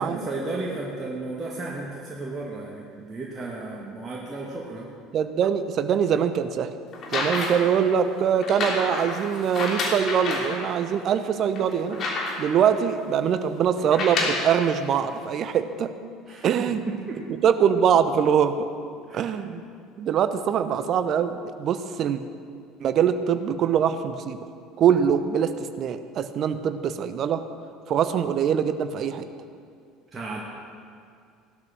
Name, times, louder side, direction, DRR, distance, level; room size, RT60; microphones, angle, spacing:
voice 1, 0.0-4.9 16.3-17.2 19.1-19.3 30.1-30.4, right 2 dB, 25° right, -4 dB, 2.3 m, -34 dB
voice 2, 5.1-6.7 7.1-12.1 12.4-15.9 16.4-16.8 17.3-18.7 19.1-19.6 20.0-22.2 22.8-24.4 24.8-27.4 27.9-29.3, right 8 dB, 45° right, 11 dB, 0.9 m, -23 dB
sound 1, 6.9-7.7 8.4-10.6 11.1-11.2 11.5-12.6 13.8-14.5 15.4-15.5, left 3 dB, 45° left, 3.1 m, -29 dB
16.5 x 12.0 x 6.2 m, 2.3 s
figure-of-eight pair, 65°, 0 cm